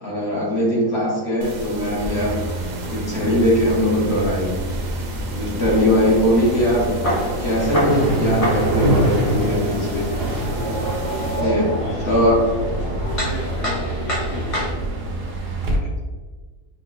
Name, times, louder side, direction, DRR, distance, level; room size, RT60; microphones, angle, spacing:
voice 1, 0.0-2.4 2.9-4.6 5.3-6.9 7.4-10.1 11.4-11.7 12.0-12.4, left 1 dB, 45° left, -4 dB, 1.1 m, -20 dB
sound 1, 1.4-11.4, right 3 dB, 70° right, 1.0 m, -35 dB
sound 2, 2.0-15.8, right 1 dB, 50° right, 0.7 m, -26 dB
sound 3, 5.6-14.7, equal, 30° left, 0.7 m, -27 dB
voice 2, 11.8-14.6, left 2 dB, 65° left, -3 dB, 1.1 m, -35 dB
4.7 x 2.2 x 3.8 m, 1.4 s
omnidirectional pair, 1.7 m